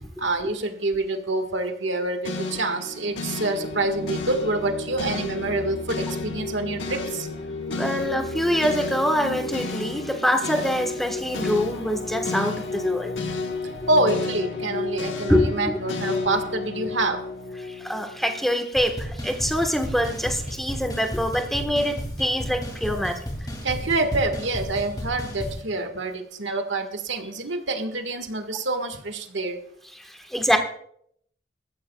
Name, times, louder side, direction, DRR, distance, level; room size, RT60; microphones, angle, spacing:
voice 1, 0.2-7.3 13.9-17.2 23.6-29.6, right 2 dB, 80° right, 6 dB, 1.7 m, -27 dB
sound 1, 2.2-18.5, left 3 dB, 75° left, 1.5 m, -31 dB
voice 2, 7.7-13.1 15.3-15.8 17.8-23.2 30.3-30.6, equal, ahead, 4 dB, 1.4 m, -24 dB
sound 2, 18.8-25.6, equal, 20° left, 2.7 m, -33 dB
20.5 x 14.0 x 2.4 m, 0.67 s
head